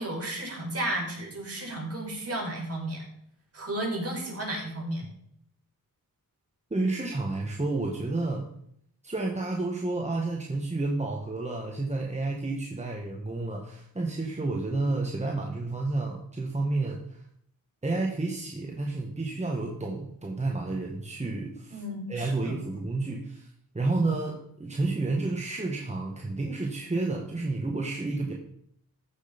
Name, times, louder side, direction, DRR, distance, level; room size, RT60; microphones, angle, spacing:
voice 1, 0.0-3.0 3.5-5.0 21.7-22.6, right 1 dB, 45° right, -2 dB, 5.2 m, -33 dB
voice 2, 6.7-8.5 9.0-17.2 17.8-21.8 22.1-28.3, right 2 dB, 20° right, 0 dB, 1.6 m, -30 dB
14.5 x 6.5 x 5.3 m, 0.71 s
wide cardioid pair, 90°, 35 cm